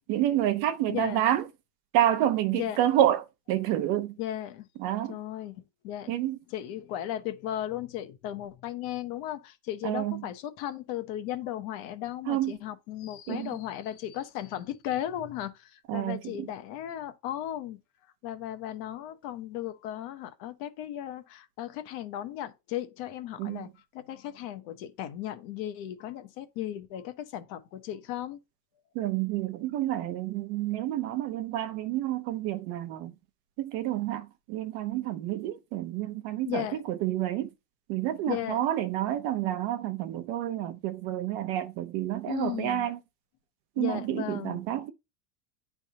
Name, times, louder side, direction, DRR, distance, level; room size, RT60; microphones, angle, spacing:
voice 1, 0.1-1.4 1.9-4.2 4.8-5.2 6.1-6.4 9.8-10.2 12.3-12.5 13.3-13.5 15.9-16.5 23.4-23.7 28.9-33.1 33.6-37.5 37.9-43.0 43.8-44.9, right 12 dB, 50° right, 0.7 m, -29 dB
voice 2, 0.9-1.2 2.5-2.8 4.2-4.7 5.1-6.2 6.5-17.8 18.2-28.4 36.5-36.8 38.2-38.6 42.3-42.9 43.8-44.6, left 12 dB, 50° left, 1.0 m, -36 dB
10.5 x 3.5 x 2.8 m
cardioid pair, 165°, 47 cm